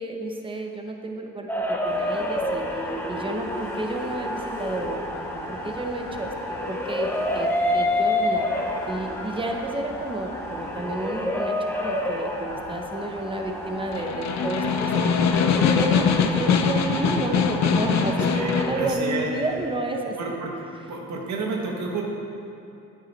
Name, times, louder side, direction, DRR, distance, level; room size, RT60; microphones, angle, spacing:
voice 1, 0.0-2.8 3.1-8.5 8.9-20.2, right 1 dB, 15° right, 2 dB, 1.1 m, -31 dB
sound 1, 1.5-18.9, left 1 dB, 5° left, 0.9 m, -29 dB
sound 2, 1.8-19.7, left 2 dB, 50° left, 2.7 m, -42 dB
Snare drum, 13.8-18.8, left 6 dB, 65° left, 0.7 m, -22 dB
voice 2, 18.3-19.3 20.2-20.5 20.9-22.0, right 3 dB, 70° right, -1 dB, 1.4 m, -30 dB
9.8 x 9.5 x 4.2 m, 2.7 s
cardioid pair, 90°, 30 cm